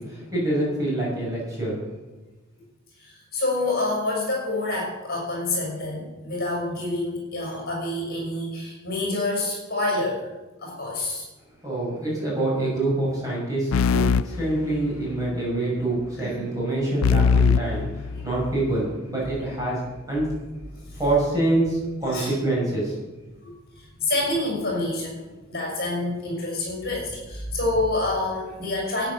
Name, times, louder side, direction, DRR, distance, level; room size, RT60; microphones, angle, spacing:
voice 1, 0.0-1.8 11.6-19.8 20.1-20.4 21.0-23.0 23.4-23.5, right 2 dB, 15° right, -6 dB, 6.1 m, -26 dB
voice 2, 3.0-10.3 10.6-11.2 16.2-16.4 17.4-17.7 18.1-18.3 20.9-21.0 22.1-22.3 23.8-29.1, left 2 dB, 45° left, -1 dB, 6.1 m, -28 dB
sound 1, 13.7-15.3 17.0-18.8, left 6 dB, 75° left, 0.4 m, -22 dB
12.5 x 9.7 x 7.0 m, 1.1 s
head